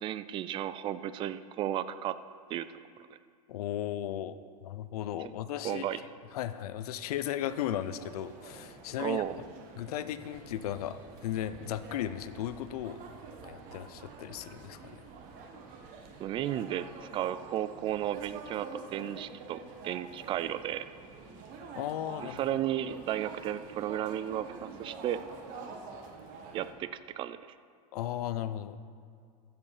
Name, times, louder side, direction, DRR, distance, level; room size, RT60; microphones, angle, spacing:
voice 1, 0.0-2.2 2.5-2.7 3.0-3.1 5.6-6.0 9.0-9.4 16.2-16.9 17.1-20.8 22.2-25.2 26.5-26.9 27.2-27.4, right 11 dB, 25° right, 13 dB, 0.3 m, -34 dB
voice 2, 3.5-6.0 6.3-9.2 9.8-13.0 13.4-15.0 21.7-22.4 27.9-28.8, left 11 dB, 75° left, 13 dB, 0.6 m, -36 dB
sound 1, 7.4-26.7, right 4 dB, 45° right, 1.5 m, -47 dB
14.5 x 5.2 x 4.9 m, 2.2 s
supercardioid pair, 130°, 20 cm